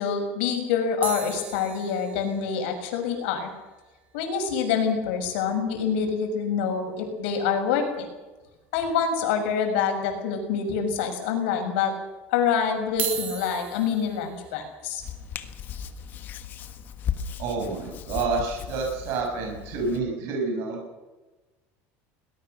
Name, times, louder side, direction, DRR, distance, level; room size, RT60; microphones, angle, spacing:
voice 1, 0.0-3.5 4.1-8.1 8.7-11.9 12.3-15.0, left 6 dB, 80° left, 4 dB, 6.3 m, -26 dB
sound 1, 1.0-5.4 5.7-5.8 5.9-6.1 6.5-6.6 8.0-8.1 8.8-9.3 9.8-9.9 10.7-10.8 12.8-18.9 19.5-19.7, right 8 dB, 30° right, 6.1 m, -40 dB
Hands, 15.0-20.0, left 8 dB, 30° left, 1.3 m, -36 dB
voice 2, 17.4-20.8, right 3 dB, 50° right, 0 dB, 7.0 m, -28 dB
22.0 x 19.5 x 6.7 m, 1.1 s
cardioid pair, 170°, 6 cm